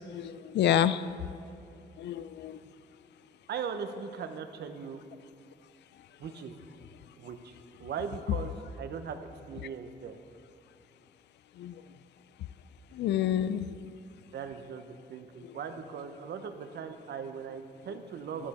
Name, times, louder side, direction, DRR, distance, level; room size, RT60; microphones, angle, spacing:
voice 1, 0.1-1.1 2.0-2.6 11.6-11.8 12.9-13.8 15.4-15.5, left 10 dB, 80° left, 15 dB, 0.4 m, -29 dB
voice 2, 3.5-5.0 6.2-6.6 7.2-7.5 7.8-9.2 9.5-10.2 14.3-18.5, right 6 dB, 70° right, 8 dB, 0.8 m, -39 dB
10.5 x 9.9 x 4.2 m, 2.5 s
cardioid pair, 115°, 18 cm